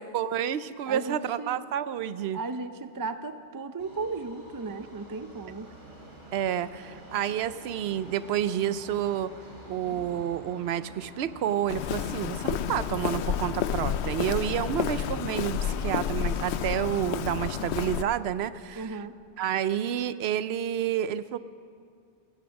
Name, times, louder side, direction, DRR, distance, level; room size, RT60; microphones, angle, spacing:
voice 1, 0.0-2.4 6.3-9.3 9.7-19.0 19.4-21.4, right 10 dB, 75° right, 15 dB, 0.8 m, -29 dB
voice 2, 0.9-1.6 2.3-5.7 18.8-19.1, right 3 dB, 30° right, 11 dB, 0.4 m, -35 dB
Subway metro underground, 3.8-17.9 18.2-18.3 19.1-19.2 19.5-19.6 20.3-20.4, equal, 45° right, 2.8 m, -50 dB
sound 1, 9.8-10.3 11.1-11.2 12.0-12.5 13.8-14.3 14.8-14.9 15.2-15.3, right 1 dB, 50° left, 3.4 m, -49 dB
Walk footsteps, 11.7-18.0, left 9 dB, 80° left, 0.8 m, -30 dB
15.5 x 14.5 x 6.3 m, 2.3 s
omnidirectional pair, 1.1 m